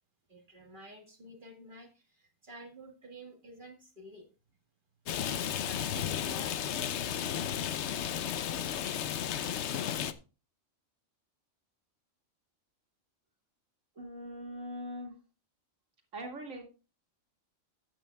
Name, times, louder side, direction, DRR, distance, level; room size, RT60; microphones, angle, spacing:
voice 1, 0.3-4.3 5.4-7.1, right 1 dB, 40° right, 3 dB, 1.9 m, -51 dB
Rain, 5.1-10.1, left 9 dB, 65° left, 0.9 m, -33 dB
voice 2, 14.0-15.1 16.1-16.6, equal, 70° right, 2 dB, 2.5 m, -41 dB
13.5 x 9.2 x 2.3 m, 0.33 s
omnidirectional pair, 1.4 m